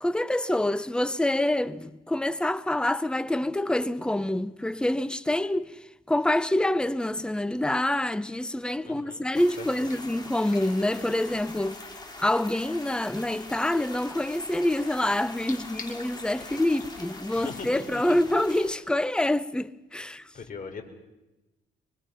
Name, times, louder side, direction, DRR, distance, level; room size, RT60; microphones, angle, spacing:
voice 1, 0.0-11.8 12.2-20.3, left 1 dB, 5° left, 0.8 m, -26 dB
voice 2, 8.8-9.2 9.8-9.9 10.5-10.6 15.5-16.0 17.3-18.2 20.3-20.8, left 5 dB, 45° left, 4.1 m, -40 dB
sound 1, 9.3-18.7, left 2 dB, 20° left, 4.4 m, -43 dB
24.5 x 21.5 x 5.7 m
cardioid pair, 90°, 20 cm